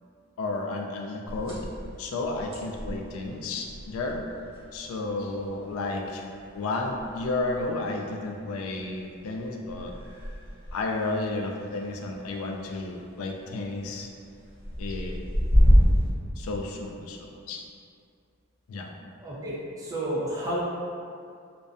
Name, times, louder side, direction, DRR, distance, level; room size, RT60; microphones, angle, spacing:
voice 1, 0.4-1.6 2.0-4.2 4.7-6.2 6.5-9.9 10.7-14.1 14.8-15.2 16.4-17.6 18.7-18.9, left 2 dB, 80° left, 1 dB, 0.3 m, -32 dB
sound 1, 1.3-16.1, equal, 60° right, 0.8 m, -29 dB
voice 2, 19.2-20.6, right 1 dB, 15° right, -8 dB, 0.4 m, -31 dB
2.5 x 2.1 x 2.4 m, 2.4 s
head